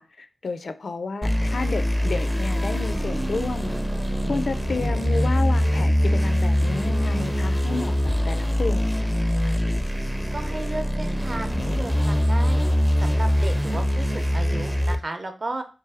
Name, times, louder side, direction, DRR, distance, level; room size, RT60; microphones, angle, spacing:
voice 1, 0.0-3.7 4.3-8.9, left 3 dB, 60° left, 0.4 m, -31 dB
sound 1, 1.2-15.0, equal, ahead, 0.4 m, -23 dB
voice 2, 10.3-12.6 13.0-15.6, right 2 dB, 40° right, 0.6 m, -34 dB
3.3 x 3.0 x 3.4 m
wide cardioid pair, 105°, 0 cm